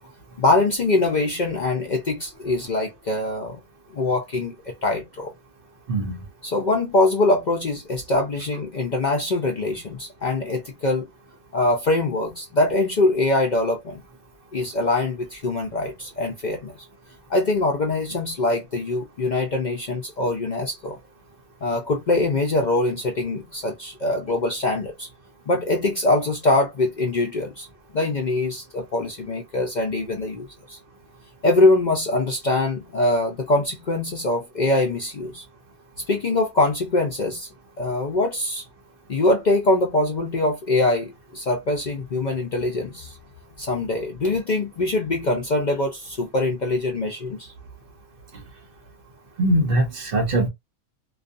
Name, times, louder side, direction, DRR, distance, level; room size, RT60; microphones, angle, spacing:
voice 1, 0.4-3.6 3.9-5.3 6.4-11.1 11.5-14.0 14.5-16.8 17.3-21.0 21.6-25.1 25.5-27.7 27.9-30.8 31.4-35.4 36.1-37.5 37.8-38.6 39.1-43.1 43.6-47.5, left 2 dB, 65° left, 0.4 m, -23 dB
voice 2, 5.9-6.2 49.4-50.5, right 1 dB, 50° right, 0.7 m, -21 dB
2.4 x 2.4 x 2.4 m
omnidirectional pair, 1.4 m